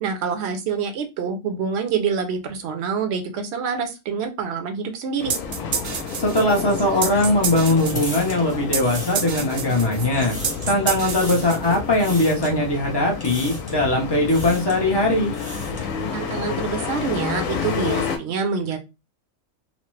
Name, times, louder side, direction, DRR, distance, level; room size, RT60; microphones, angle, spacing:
voice 1, 0.0-5.3 16.1-18.8, right 6 dB, 60° right, 6 dB, 0.8 m, -26 dB
sound 1, 5.2-18.2, left 6 dB, 75° left, 1.0 m, -30 dB
sound 2, 5.3-12.0, right 6 dB, 80° right, 0.4 m, -29 dB
voice 2, 6.2-10.4 10.7-15.3, left 1 dB, 30° left, -2 dB, 0.5 m, -20 dB
sound 3, 6.6-9.7 10.0-10.7 11.0-11.6 12.0-12.5 13.2-13.8 14.2-14.8 15.2-15.9, equal, 15° left, 0.8 m, -38 dB
3.0 x 2.0 x 3.1 m, 0.25 s
omnidirectional pair, 1.4 m